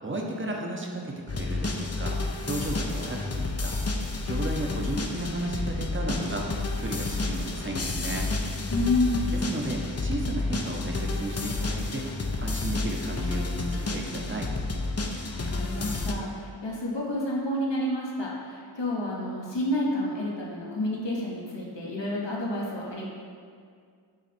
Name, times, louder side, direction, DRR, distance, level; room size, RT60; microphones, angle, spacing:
voice 1, 0.0-2.2 2.4-3.7 4.2-6.5 6.8-8.3 9.3-12.1 12.4-14.5, right 1 dB, 25° right, 0 dB, 0.9 m, -34 dB
sound 1, 1.3-16.1, left 3 dB, 35° left, 0.6 m, -30 dB
voice 2, 8.7-9.3 15.3-23.0, left 1 dB, 70° left, -4 dB, 1.3 m, -29 dB
9.0 x 3.2 x 4.3 m, 2.1 s
wide cardioid pair, 55°, 44 cm